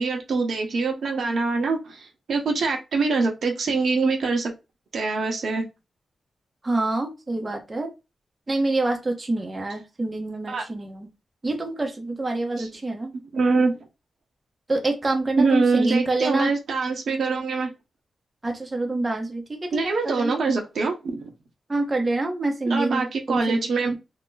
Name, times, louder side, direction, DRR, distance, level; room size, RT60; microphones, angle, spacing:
voice 1, 0.0-4.5 4.9-5.6 10.5-10.6 12.6-12.7 13.3-13.8 15.4-17.7 19.7-21.3 22.7-24.0, right 4 dB, 70° right, 2 dB, 0.8 m, -24 dB
voice 2, 6.6-7.9 8.5-11.1 11.4-13.1 14.7-16.5 18.4-20.3 21.7-23.0 23.3-23.6, right 2 dB, 25° right, 3 dB, 0.6 m, -26 dB
2.5 x 2.0 x 3.8 m, 0.25 s
cardioid pair, 95°, 0 cm